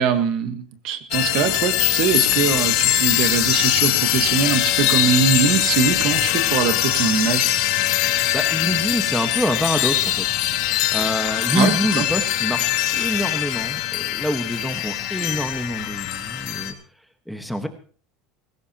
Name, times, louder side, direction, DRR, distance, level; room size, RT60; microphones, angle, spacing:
voice 1, 0.0-7.5 11.5-12.0, right 7 dB, 55° right, 9 dB, 1.6 m, -22 dB
sound 1, 1.1-16.7, left 13 dB, 65° left, 2.1 m, -22 dB
voice 2, 8.0-10.3 10.6-16.8 17.3-17.7, equal, ahead, 6 dB, 1.4 m, -26 dB
20.0 x 16.5 x 3.0 m, 0.41 s
cardioid pair, 150°, 0 cm